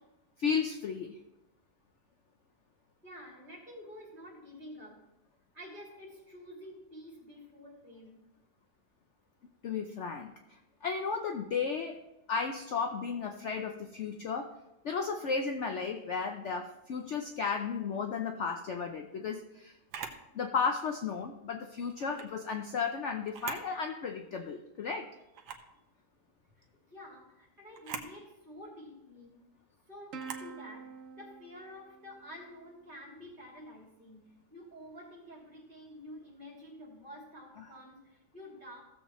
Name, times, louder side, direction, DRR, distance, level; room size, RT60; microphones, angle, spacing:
voice 1, 0.4-1.1 9.6-10.3 10.8-12.0 12.3-14.5 14.8-19.7 20.3-25.1 37.6-37.7, left 5 dB, 60° left, 4 dB, 0.8 m, -34 dB
voice 2, 3.0-5.0 5.5-8.2 26.6-29.3 29.9-34.2 34.5-38.8, equal, 30° right, -4 dB, 3.1 m, -49 dB
Camera, 19.9-20.2 22.0-22.3 23.2-23.7 24.2-24.3 25.3-25.7 27.7-28.1 30.2-30.5, right 6 dB, 85° right, 1.5 m, -42 dB
Plucked string instrument, 30.1-32.9, right 5 dB, 60° right, 1.1 m, -47 dB
16.0 x 7.3 x 3.1 m, 0.95 s
omnidirectional pair, 1.7 m